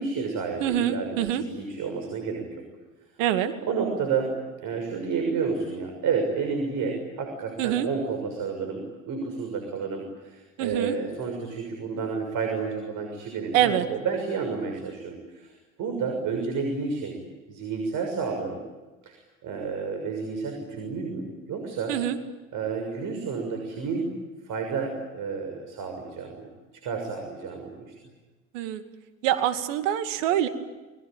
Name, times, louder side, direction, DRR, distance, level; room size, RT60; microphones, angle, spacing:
voice 1, 0.0-2.6 3.6-4.3 4.6-17.2 17.5-18.6 19.0-22.0 22.5-24.1 24.4-26.5 26.8-27.9, right 5 dB, 55° right, 4 dB, 6.7 m, -30 dB
voice 2, 0.6-1.4 3.2-3.5 7.6-7.9 10.6-10.9 13.5-13.8 21.9-22.2 28.5-28.8 29.2-30.5, right 11 dB, 75° right, 9 dB, 2.4 m, -25 dB
30.0 x 22.0 x 9.0 m, 1.2 s
hypercardioid pair, 70°, 38 cm